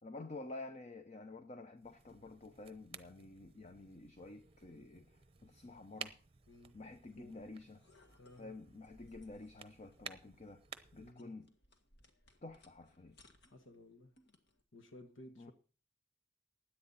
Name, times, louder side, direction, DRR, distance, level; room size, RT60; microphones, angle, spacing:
voice 1, 0.0-6.2 6.7-7.8 8.4-10.6 10.9-11.5 12.4-13.2 15.4-15.5, left 2 dB, 35° left, 0.9 m, -50 dB
sound 1, 1.8-11.1, right 6 dB, 30° right, 0.8 m, -55 dB
voice 2, 6.5-6.8 7.2-7.6 8.2-8.6 11.0-11.3 13.4-14.1 14.7-15.5, left 1 dB, 80° left, 1.6 m, -56 dB
sound 2, 7.5-14.6, left 1 dB, 60° left, 1.8 m, -68 dB
16.5 x 10.0 x 4.2 m
head